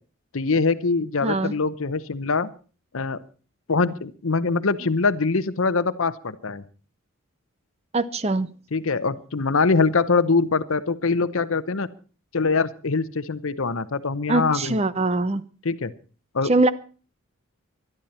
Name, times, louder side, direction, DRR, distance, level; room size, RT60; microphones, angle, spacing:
voice 1, 0.3-2.5 2.9-3.2 3.7-6.6 8.7-11.9 12.3-14.8 15.6-15.9 16.3-16.5, left 4 dB, 70° left, 0.8 m, -23 dB
voice 2, 1.2-1.5 7.9-8.5 14.3-15.4 16.4-16.7, right 2 dB, 30° right, 0.6 m, -22 dB
20.5 x 12.0 x 4.3 m
head